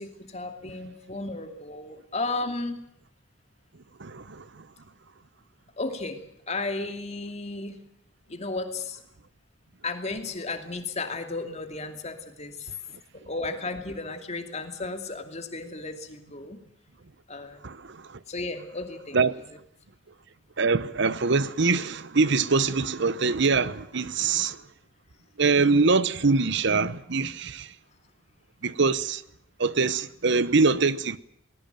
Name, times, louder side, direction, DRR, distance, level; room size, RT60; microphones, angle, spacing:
voice 1, 0.0-2.8 5.8-6.2 6.5-7.8 8.3-9.0 9.8-12.7 13.2-16.6 17.3-17.6 18.3-19.2, left 3 dB, 35° left, 2.6 m, -34 dB
voice 2, 4.0-4.7 17.6-18.2 19.1-19.3 20.6-24.6 25.4-27.7 28.6-29.2 29.6-31.2, right 4 dB, 65° right, 0.9 m, -24 dB
19.5 x 19.0 x 9.1 m
head